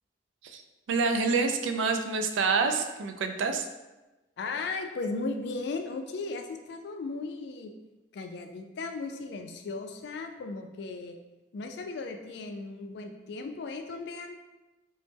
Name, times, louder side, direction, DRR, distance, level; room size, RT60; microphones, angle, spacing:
voice 1, 0.9-3.7, right 4 dB, 85° right, 6 dB, 0.3 m, -27 dB
voice 2, 4.4-7.7 8.1-11.2 11.5-14.4, left 3 dB, 60° left, 5 dB, 0.3 m, -36 dB
3.0 x 2.0 x 3.3 m, 1.1 s
head